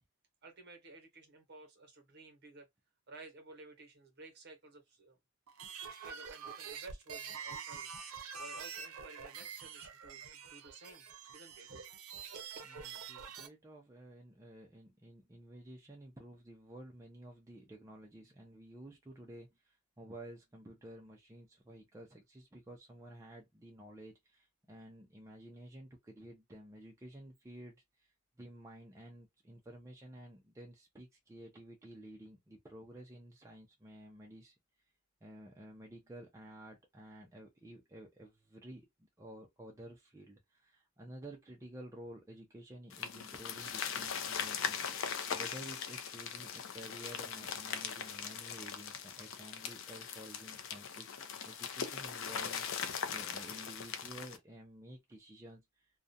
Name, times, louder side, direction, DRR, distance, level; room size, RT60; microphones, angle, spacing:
voice 1, 0.4-2.7 3.1-5.2 5.5-7.9 8.4-11.1 11.3-12.5, right 3 dB, 50° right, 0.9 m, -54 dB
sound 1, 5.5-13.5, right 6 dB, 85° right, 0.6 m, -46 dB
voice 2, 13.1-28.1 28.4-34.5 35.2-38.9 39.2-44.8 45.3-52.7 53.1-55.9, right 1 dB, 15° right, 0.4 m, -52 dB
sound 2, 42.9-54.4, left 7 dB, 65° left, 0.4 m, -40 dB
2.3 x 2.1 x 2.5 m
head